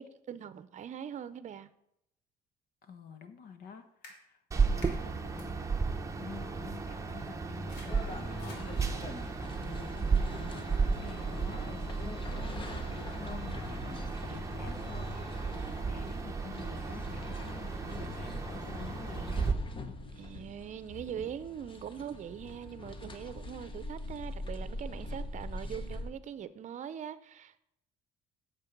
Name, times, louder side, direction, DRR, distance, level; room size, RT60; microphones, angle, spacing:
voice 1, 0.0-1.7 20.1-27.6, right 9 dB, 45° right, 0.7 m, -42 dB
voice 2, 2.8-5.8 6.2-19.4, left 6 dB, 65° left, 1.3 m, -49 dB
sound 1, 4.0-4.2 4.8-4.9 5.4-5.5 6.6-6.7 7.1-9.4, left 2 dB, 90° left, 2.9 m, -54 dB
sound 2, 4.5-19.5, right 5 dB, 20° right, 0.9 m, -34 dB
sound 3, 7.9-26.1, left 2 dB, 30° left, 1.1 m, -43 dB
8.9 x 7.4 x 5.4 m
cardioid pair, 110°, 17 cm